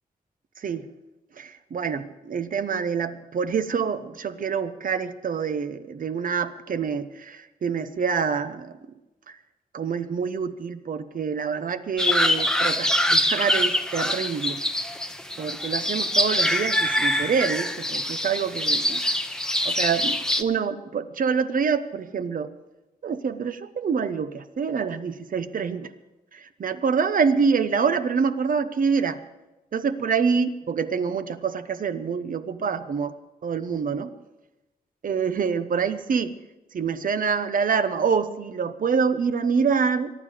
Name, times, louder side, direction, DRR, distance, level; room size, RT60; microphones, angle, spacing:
voice 1, 0.6-0.9 1.3-8.8 9.3-9.4 9.7-14.6 15.4-19.0 19.6-22.5 23.0-25.9 26.3-29.2 29.7-33.2 33.4-34.1 35.0-36.3 36.7-40.1, right 6 dB, 60° right, 11 dB, 0.9 m, -26 dB
sound 1, 12.0-20.4, left 1 dB, 5° left, 0.9 m, -24 dB
24.0 x 10.5 x 5.0 m, 1.0 s
wide cardioid pair, 125°, 16 cm